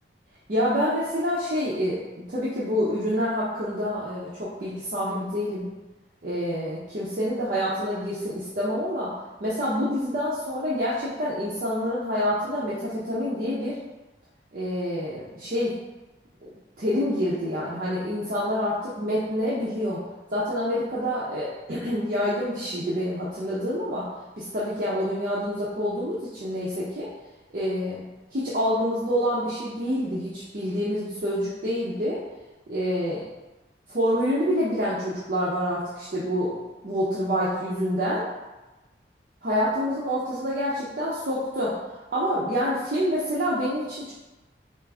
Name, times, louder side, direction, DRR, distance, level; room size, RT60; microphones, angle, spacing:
voice 1, 0.5-5.7 6.2-9.1 9.4-13.7 14.5-15.7 16.4-16.5 16.8-20.0 20.3-24.1 24.4-27.1 27.5-28.0 28.3-32.2 32.7-33.2 33.9-36.6 36.8-38.2 39.4-41.7 42.1-44.1, equal, 50° right, -8 dB, 0.7 m, -27 dB
4.5 x 2.5 x 3.5 m, 1.1 s
head